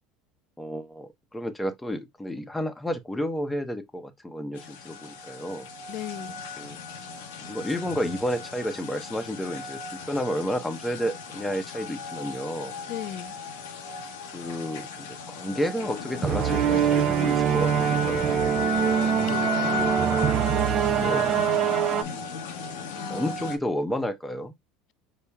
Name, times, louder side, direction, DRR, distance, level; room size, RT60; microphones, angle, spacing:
voice 1, 0.6-5.7 6.6-6.8 7.4-12.7 14.3-18.2 21.0-21.3 23.1-24.5, equal, 10° left, 0.8 m, -31 dB
sound 1, 4.6-23.6, left 4 dB, 90° left, 0.9 m, -35 dB
voice 2, 5.9-6.4 12.9-13.4 19.0-20.1 22.9-23.3, left 13 dB, 60° left, 0.3 m, -37 dB
sound 2, 16.2-22.0, right 8 dB, 45° right, 0.6 m, -23 dB
5.5 x 2.1 x 3.4 m
supercardioid pair, 105°, 0 cm